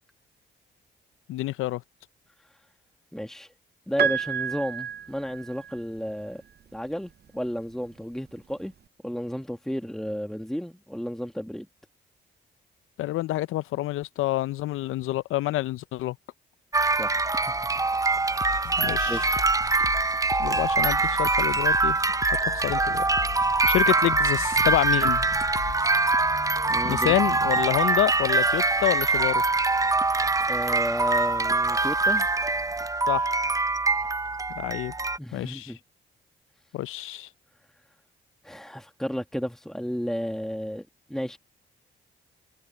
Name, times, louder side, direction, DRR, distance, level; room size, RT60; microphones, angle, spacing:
voice 1, 1.3-1.8 13.0-16.2 18.8-19.2 20.4-22.0 22.5-23.1 23.7-25.2 26.8-29.4 33.1-33.3 34.6-34.9 35.3-35.7 36.7-37.3, left 15 dB, 90° left, 0.6 m, -27 dB
voice 2, 3.1-3.5 3.9-6.4 6.7-8.7 9.0-11.7 17.0-17.7 19.1-19.3 26.7-27.2 30.5-32.3 35.2-35.8 38.4-41.4, equal, ahead, 1.6 m, -32 dB
Piano, 4.0-6.0 7.3-7.4, right 8 dB, 55° right, 0.8 m, -30 dB
sound 1, 16.7-35.2, right 3 dB, 15° right, 0.6 m, -24 dB
sound 2, 18.4-25.9, left 8 dB, 70° left, 5.0 m, -38 dB
supercardioid pair, 60°, 21 cm